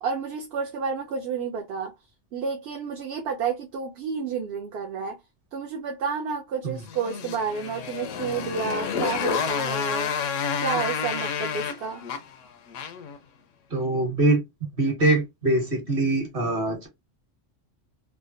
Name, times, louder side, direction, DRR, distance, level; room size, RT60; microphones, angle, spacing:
voice 1, 0.0-1.9 2.3-5.2 5.5-10.1 10.6-12.0, right 5 dB, 65° right, 0.8 m, -30 dB
Motorcycle, 6.8-13.2, left 7 dB, 90° left, 1.0 m, -29 dB
voice 2, 13.7-14.4 14.8-16.9, right 2 dB, 45° right, 1.5 m, -23 dB
3.6 x 2.1 x 2.5 m
omnidirectional pair, 1.3 m